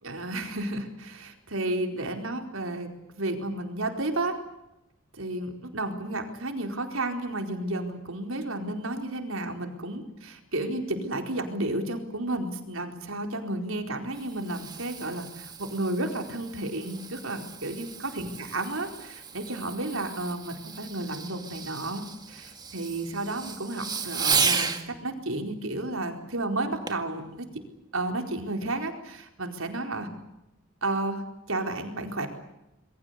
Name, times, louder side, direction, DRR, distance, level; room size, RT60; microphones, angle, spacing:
voice 1, 0.0-2.9 3.1-4.4 5.2-17.9 18.1-27.5 27.9-30.1 30.8-31.2 31.5-32.3, right 2 dB, 80° right, 4 dB, 4.5 m, -32 dB
Fireworks, 13.9-24.9 26.9-27.1 27.7-27.8, right 5 dB, 20° right, 2.0 m, -34 dB
27.5 x 22.0 x 8.3 m, 0.88 s
head